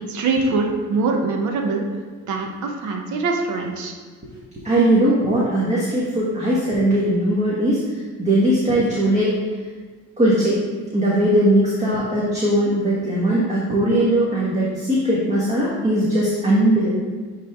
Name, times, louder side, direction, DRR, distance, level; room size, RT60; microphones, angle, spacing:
voice 1, 0.1-1.8 2.3-3.9, right 3 dB, 65° right, 2 dB, 0.9 m, -23 dB
voice 2, 4.6-9.4 10.2-10.6 10.9-16.9, right 1 dB, 20° right, -6 dB, 1.3 m, -19 dB
9.3 x 3.3 x 3.5 m, 1.5 s
cardioid pair, 100°, 33 cm